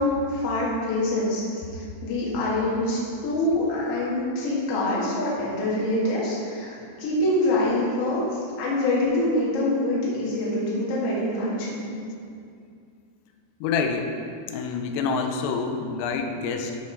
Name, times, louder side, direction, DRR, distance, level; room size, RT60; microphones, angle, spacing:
voice 1, 0.0-11.9, left 1 dB, 50° left, -7 dB, 1.8 m, -25 dB
voice 2, 13.6-14.1 14.5-16.8, left 5 dB, 85° left, 5 dB, 3.3 m, -27 dB
12.5 x 5.7 x 3.4 m, 2.3 s
omnidirectional pair, 5.8 m